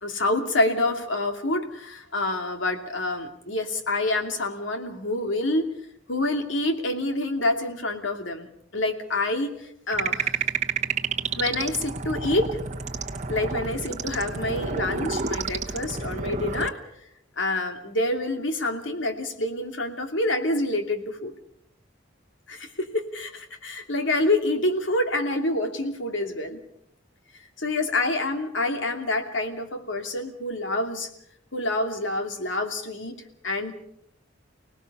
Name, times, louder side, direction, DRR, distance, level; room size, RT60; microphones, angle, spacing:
voice 1, 0.0-5.7 6.1-8.5 8.7-10.4 11.3-12.5 13.3-16.8 17.4-21.3 22.5-26.6 27.6-31.1 31.5-33.8, left 2 dB, 85° left, 5 dB, 2.7 m, -27 dB
sound 1, 9.9-16.7, right 5 dB, 35° right, 1.0 m, -30 dB
29.5 x 18.5 x 5.5 m, 0.73 s
head